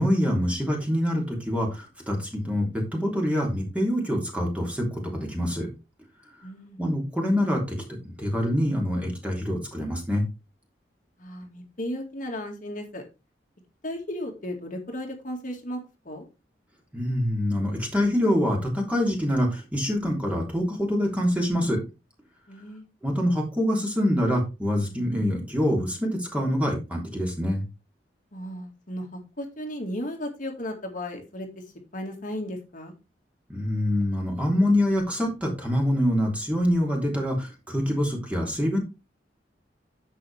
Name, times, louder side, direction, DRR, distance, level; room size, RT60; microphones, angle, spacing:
voice 1, 0.0-5.7 6.8-7.8 8.0-10.2 16.9-21.8 23.0-27.6 33.5-38.8, equal, 5° right, 0 dB, 3.3 m, -25 dB
voice 2, 6.4-6.8 11.2-13.0 13.8-16.2 22.5-22.8 28.3-31.6 31.9-32.9, equal, 45° left, 2 dB, 2.2 m, -35 dB
10.5 x 7.5 x 3.5 m, 0.27 s
head